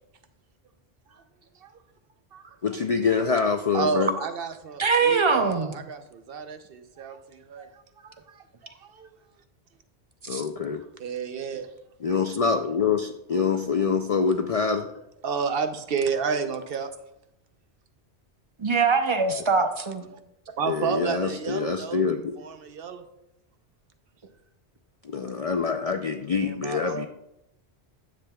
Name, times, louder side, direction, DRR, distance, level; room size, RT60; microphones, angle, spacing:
voice 1, 2.6-4.1 10.3-10.8 12.0-14.9 20.7-22.3 25.0-27.1, left 5 dB, 60° left, 6 dB, 0.4 m, -25 dB
voice 2, 3.7-7.7 8.0-9.1 11.0-11.7 15.2-16.9 19.3-19.4 20.1-20.2 20.6-22.0 22.4-23.0 26.4-27.1, right 5 dB, 65° right, 8 dB, 0.8 m, -31 dB
voice 3, 4.8-5.8 10.2-10.4 18.6-20.1, right 4 dB, 35° right, 7 dB, 0.5 m, -23 dB
10.0 x 7.4 x 2.3 m, 0.82 s
omnidirectional pair, 1.1 m